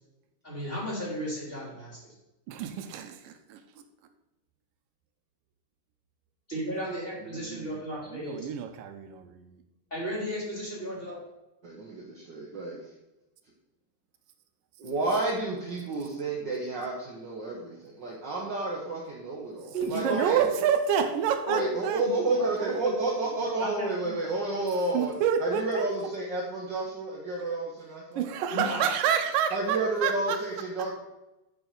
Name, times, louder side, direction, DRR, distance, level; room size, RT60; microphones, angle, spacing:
voice 1, 0.4-2.1 6.5-8.5 9.9-11.2 19.7-20.3 21.5-21.6 23.4-24.1 28.5-28.9, equal, 15° left, -5 dB, 3.3 m, -34 dB
voice 2, 2.5-3.6 7.3-7.8 8.1-9.6 19.8-22.0 22.6-22.7 24.9-25.8 28.2-30.4, right 8 dB, 90° right, 8 dB, 2.5 m, -28 dB
voice 3, 11.6-12.9 14.8-20.4 21.5-28.2 29.5-30.9, right 2 dB, 55° right, -3 dB, 1.3 m, -31 dB
7.0 x 6.6 x 6.9 m, 0.96 s
omnidirectional pair, 3.8 m